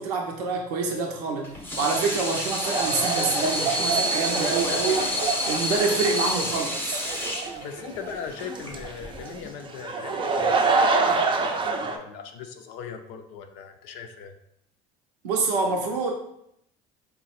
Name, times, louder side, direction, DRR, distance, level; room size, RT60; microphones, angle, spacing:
voice 1, 0.0-7.0 15.2-16.1, right 4 dB, 90° right, 2 dB, 0.6 m, -27 dB
Water tap faucet / Sink (filling or washing), 1.4-9.5, left 1 dB, 10° left, 0.8 m, -29 dB
sound 1, 2.6-12.0, right 4 dB, 25° right, 0.5 m, -27 dB
voice 2, 7.6-14.3, left 7 dB, 65° left, 5 dB, 0.5 m, -39 dB
3.9 x 2.2 x 4.1 m, 0.75 s
hypercardioid pair, 80°, 20 cm